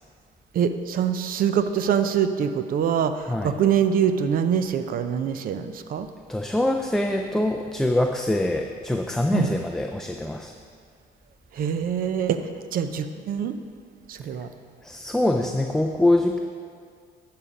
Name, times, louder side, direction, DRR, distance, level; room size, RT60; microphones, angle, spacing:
voice 1, 0.5-6.1 9.3-9.5 11.5-13.6 14.1-14.5, right 8 dB, 55° right, 10 dB, 0.6 m, -24 dB
voice 2, 6.3-10.5 14.8-16.4, left 1 dB, 5° left, 3 dB, 0.4 m, -24 dB
11.0 x 5.8 x 5.1 m, 2.1 s
cardioid pair, 110°, 17 cm